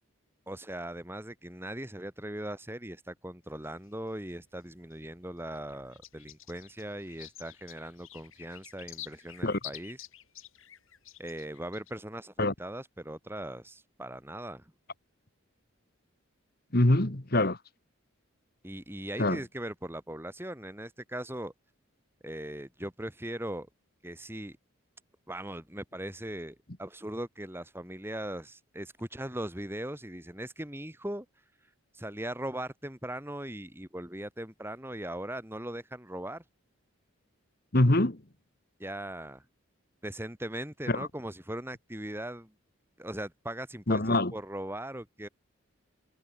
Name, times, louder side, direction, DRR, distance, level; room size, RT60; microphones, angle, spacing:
voice 1, 0.5-10.0 11.2-14.7 18.6-21.5 22.2-23.7 24.0-24.6 25.3-31.3 31.9-36.4 38.8-39.4 40.0-42.5 43.0-45.3, right 1 dB, 10° right, 2.9 m, -39 dB
sound 1, 3.5-4.9 5.3-11.9, left 13 dB, 70° left, 5.5 m, -49 dB
voice 2, 16.7-17.6 19.2-19.4 37.7-38.2 40.9-41.1 43.9-44.3, left 1 dB, 45° left, 1.7 m, -24 dB
head